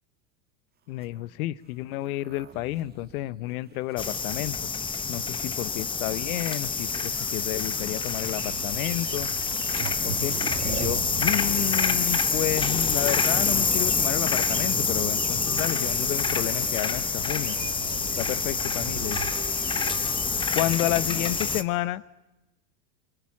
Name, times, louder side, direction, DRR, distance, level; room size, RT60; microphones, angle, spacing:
voice 1, 0.9-4.6 5.1-9.3 10.0-10.4 10.6-17.6 18.2-19.2 20.5-22.0, left 16 dB, 65° left, 21 dB, 0.9 m, -30 dB
sound 1, 0.9-4.7 5.4-6.2 7.3-7.4 8.1-8.3 9.4-9.5 9.7-14.2 16.1-16.8, right 8 dB, 20° right, 1.7 m, -46 dB
sound 2, 4.0-21.6, left 5 dB, 10° left, 0.8 m, -27 dB
sound 3, 7.9-20.5, right 11 dB, 90° right, 3.1 m, -40 dB
29.5 x 23.5 x 7.2 m, 1.0 s
supercardioid pair, 140°, 46 cm